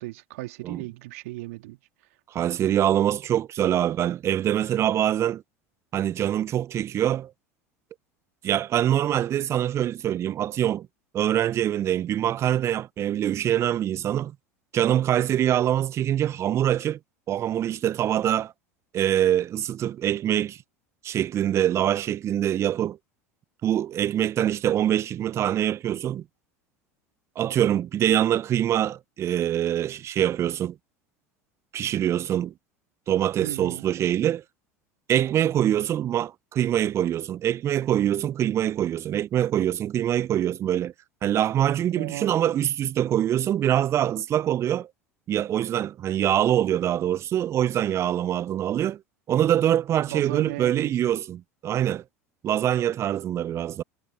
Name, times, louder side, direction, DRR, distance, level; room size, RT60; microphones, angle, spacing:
voice 1, 0.0-1.8 33.4-33.9 41.9-42.4 50.1-51.1, right 20 dB, 65° right, 2.0 m, -36 dB
voice 2, 2.3-5.4 5.9-7.3 8.4-10.9 11.1-14.3 14.7-17.0 17.3-18.5 18.9-20.6 21.0-23.0 23.6-26.2 27.4-30.8 31.7-32.5 33.1-34.4 35.1-40.9 41.2-44.9 45.3-49.0 49.3-52.0 52.4-53.8, right 11 dB, 35° right, 0.4 m, -24 dB
figure-of-eight pair, 75°, 8 cm